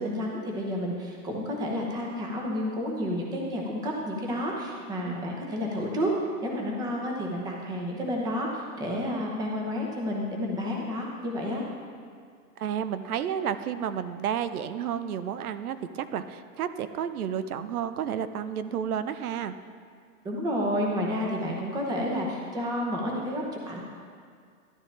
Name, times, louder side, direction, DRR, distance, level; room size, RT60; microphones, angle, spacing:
voice 1, 0.0-6.1 6.4-11.6 20.2-23.8, equal, 10° right, -1 dB, 0.9 m, -30 dB
voice 2, 12.6-19.6, right 8 dB, 75° right, 12 dB, 0.8 m, -31 dB
13.0 x 11.0 x 3.4 m, 2.1 s
hypercardioid pair, 165°, 44 cm